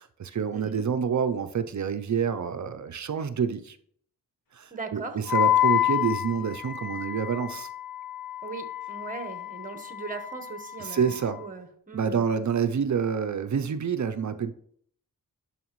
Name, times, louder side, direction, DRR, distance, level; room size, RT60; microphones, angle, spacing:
voice 1, 0.0-3.8 4.5-7.7 10.8-11.4 11.9-14.5, right 7 dB, 55° right, 10 dB, 0.6 m, -28 dB
voice 2, 0.5-0.8 4.7-5.2 8.4-12.3, right 4 dB, 25° right, 6 dB, 1.2 m, -39 dB
Wind instrument woodwind instrument, 5.3-11.4, left 12 dB, 70° left, 1.4 m, -29 dB
11.0 x 5.8 x 3.1 m, 0.63 s
cardioid pair, 75°, 36 cm